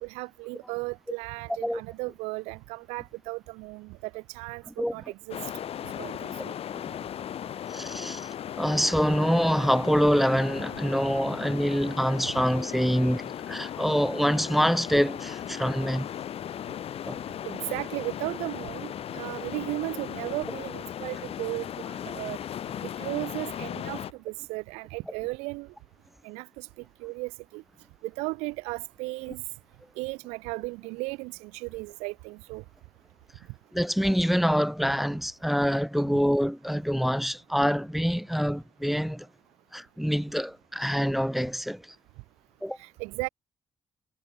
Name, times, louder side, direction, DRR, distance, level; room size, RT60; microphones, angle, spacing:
voice 1, 0.0-5.4 6.0-6.5 17.4-22.4 22.8-24.0 24.2-25.7 26.2-26.7 27.0-27.6 28.0-29.4 30.0-32.6 42.8-43.3, right 26 dB, 90° right, 1.3 m, -35 dB
sound 1, 5.3-24.1, left 10 dB, 70° left, 3.9 m, -37 dB
voice 2, 7.7-8.3 8.6-16.1 17.1-17.2 33.7-39.3 39.7-42.0 42.6-42.8, equal, ahead, 0.3 m, -25 dB
supercardioid pair, 50°, 11 cm